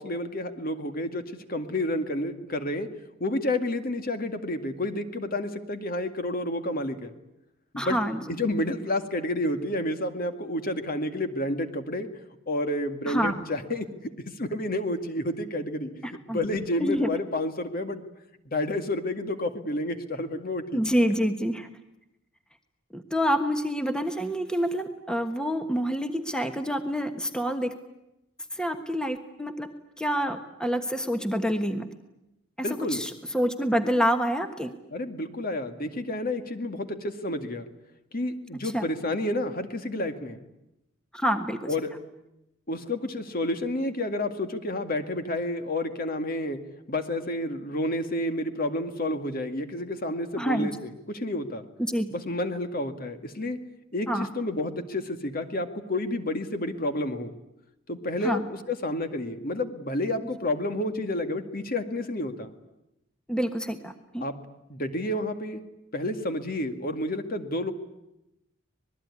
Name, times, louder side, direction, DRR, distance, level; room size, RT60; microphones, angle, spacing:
voice 1, 0.0-2.9 3.2-7.1 7.7-8.0 8.3-12.1 12.5-14.1 14.4-15.9 16.3-18.0 18.5-20.8 32.6-33.0 34.9-37.7 38.1-40.4 41.7-41.9 42.7-46.6 46.9-51.7 52.1-53.6 53.9-57.3 57.9-62.5 64.2-64.4 64.7-65.6 65.9-67.7, left 1 dB, 45° left, 7 dB, 2.1 m, -30 dB
voice 2, 7.8-8.2 13.1-13.4 16.0-16.4 16.8-17.1 20.7-21.7 22.9-27.7 28.5-29.7 30.0-31.9 32.7-34.7 38.6-38.9 41.1-41.7 50.4-50.7 51.8-52.1 54.1-54.3 58.2-58.4 63.3-64.2, equal, 5° left, 7 dB, 1.3 m, -27 dB
26.0 x 20.5 x 9.8 m, 0.90 s
head